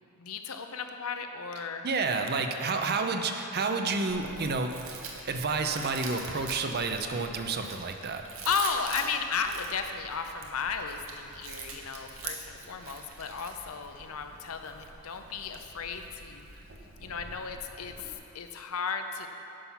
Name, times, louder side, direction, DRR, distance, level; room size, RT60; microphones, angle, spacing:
voice 1, 0.2-1.9 6.3-6.5 8.4-16.5 17.0-19.3, left 5 dB, 75° left, 6 dB, 0.7 m, -34 dB
voice 2, 1.8-4.7 5.2-8.2, right 4 dB, 50° right, 5 dB, 0.6 m, -30 dB
Chewing mastication, 4.1-18.2, right 4 dB, 65° right, 1.1 m, -44 dB
10.0 x 5.7 x 5.7 m, 2.8 s
head